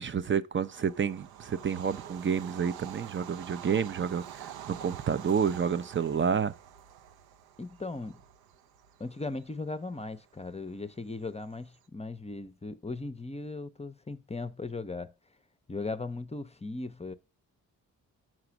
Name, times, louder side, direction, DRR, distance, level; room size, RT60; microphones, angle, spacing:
voice 1, 0.0-6.5, right 7 dB, 30° right, 0.5 m, -29 dB
Bird vocalization bird call bird song / Train, 0.6-11.8, right 10 dB, 75° right, 0.6 m, -47 dB
voice 2, 7.6-8.2 9.0-15.1 15.7-17.1, left 3 dB, 15° left, 0.6 m, -38 dB
6.2 x 4.9 x 5.9 m
supercardioid pair, 45°, 38 cm